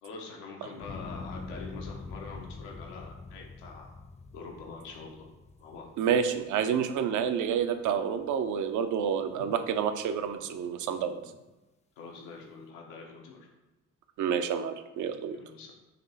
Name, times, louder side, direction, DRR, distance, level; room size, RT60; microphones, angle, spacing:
voice 1, 0.0-4.0 4.3-5.3 5.6-5.9 9.3-9.5 12.0-13.5 15.3-15.7, left 4 dB, 80° left, -1 dB, 0.9 m, -45 dB
sound 1, 0.8-7.1 7.5-8.1, left 3 dB, 20° left, 0.5 m, -44 dB
voice 2, 6.0-11.2 14.2-15.4, right 7 dB, 55° right, 9 dB, 0.6 m, -29 dB
4.2 x 3.0 x 4.1 m, 1.0 s
hypercardioid pair, 45°, 37 cm